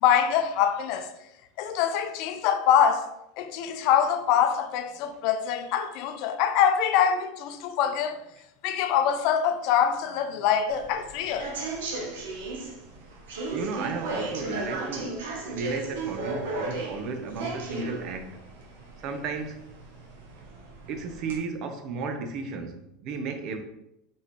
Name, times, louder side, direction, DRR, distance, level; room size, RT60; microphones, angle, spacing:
voice 1, 0.0-1.1 1.6-3.1 3.4-8.2 8.6-11.5, left 8 dB, 60° left, 0.5 m, -24 dB
sound 1, 10.7-21.4, right 2 dB, 85° right, 1.0 m, -36 dB
voice 2, 13.5-15.2 15.5-18.4 19.0-19.6 20.9-23.6, right 4 dB, 55° right, 0.7 m, -34 dB
4.2 x 3.9 x 3.1 m
hypercardioid pair, 105°, 0 cm